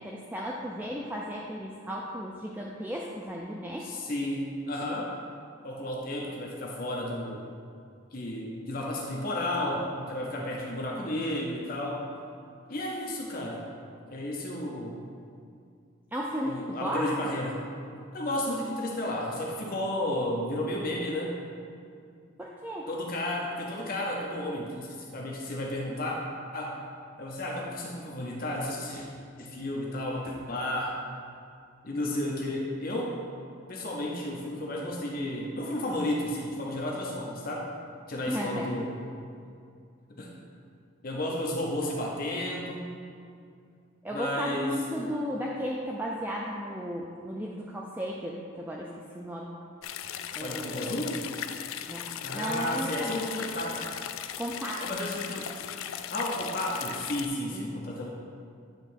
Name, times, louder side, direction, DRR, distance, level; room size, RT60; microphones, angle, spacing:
voice 1, 0.0-3.9 16.1-17.1 22.4-22.9 38.3-38.7 44.0-49.5 50.4-50.9 51.9-53.1 54.4-54.9 57.5-57.9, equal, 10° right, -3 dB, 0.3 m, -35 dB
voice 2, 3.8-5.1 5.6-7.5 8.1-12.1 12.7-13.6 14.1-15.0 16.4-17.7 18.1-21.4 22.9-26.2 26.5-26.8 27.2-29.1 29.4-31.0 31.8-33.2 33.7-37.7 38.1-39.0 40.2-40.3 41.0-43.0 44.1-44.8 50.4-51.2 52.2-53.8 54.8-55.5 56.1-58.1, left 1 dB, 45° left, -2 dB, 0.7 m, -32 dB
sound 1, 49.8-57.3, left 9 dB, 90° left, 0.3 m, -38 dB
8.8 x 3.0 x 5.8 m, 2.4 s
head